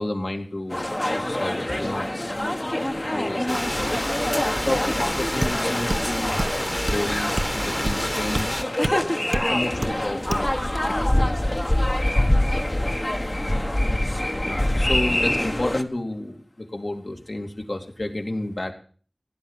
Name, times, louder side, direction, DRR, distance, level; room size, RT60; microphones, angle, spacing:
voice 1, 0.0-2.4 2.9-3.9 4.6-6.3 6.9-8.7 9.3-10.5 10.9-11.2 14.7-18.7, left 1 dB, 65° left, 3 dB, 2.7 m, -31 dB
sound 1, 0.7-15.8, left 1 dB, 35° left, 1.4 m, -25 dB
sound 2, 3.5-8.6, equal, 15° left, 1.5 m, -29 dB
sound 3, 5.1-5.2 5.4-5.6 5.9-6.1 6.4-6.6 6.9-7.0 7.4-7.5 7.9-8.0 8.3-8.5 8.8-9.0 9.3-9.5 9.8-10.0 10.3-10.5, right 1 dB, 55° right, 1.2 m, -27 dB
16.5 x 10.5 x 7.4 m, 0.43 s
wide cardioid pair, 40°, 0 cm